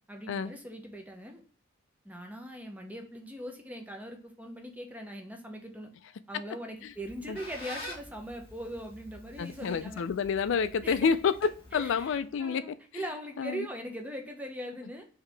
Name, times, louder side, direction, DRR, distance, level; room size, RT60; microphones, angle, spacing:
voice 1, 0.1-1.4 2.0-5.9 6.3-10.0 10.8-11.1 11.7-15.0, equal, 5° right, 0.6 m, -41 dB
Squeak, 6.8-12.3, left 1 dB, 25° left, 1.2 m, -47 dB
voice 2, 9.4-13.0 13.4-13.7, left 6 dB, 60° left, 0.3 m, -29 dB
4.7 x 2.8 x 3.3 m
head